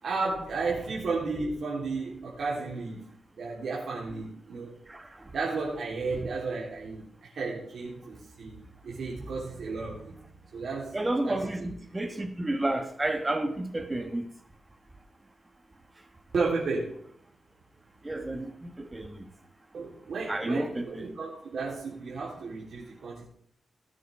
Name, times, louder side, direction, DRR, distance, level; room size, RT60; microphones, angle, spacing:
voice 1, 0.0-4.8 5.3-11.0 11.2-11.7 16.3-17.0 19.7-23.3, right 3 dB, 70° right, -5 dB, 3.4 m, -33 dB
voice 2, 4.9-5.3 10.9-14.2 18.0-19.3 20.3-20.8, right 2 dB, 20° right, 6 dB, 1.5 m, -31 dB
18.0 x 9.3 x 3.5 m, 0.63 s
wide cardioid pair, 120°, 0 cm